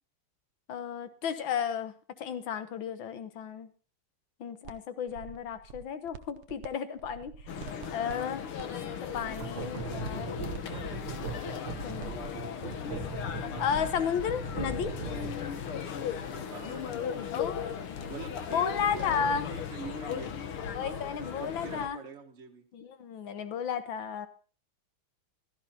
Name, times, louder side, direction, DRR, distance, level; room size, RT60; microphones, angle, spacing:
voice 1, 0.7-1.9 2.2-3.7 4.4-7.3 7.9-8.5 9.1-10.4 11.8-13.3 13.6-14.9 17.3-17.8 18.5-19.5 20.7-22.0 22.7-24.3, left 7 dB, 65° left, 10 dB, 1.9 m, -33 dB
sound 1, 4.6-4.8 5.1-6.7 6.9-12.1, right 7 dB, 90° right, 1.7 m, -47 dB
sound 2, 7.5-21.9, left 7 dB, 80° left, 2.0 m, -37 dB
voice 2, 8.8-9.3 16.2-17.3 18.1-20.4 20.8-22.6, right 5 dB, 35° right, 3 dB, 1.7 m, -45 dB
sound 3, 9.4-15.6, right 4 dB, 65° right, 1.8 m, -39 dB
16.0 x 13.0 x 2.9 m, 0.39 s
omnidirectional pair, 2.3 m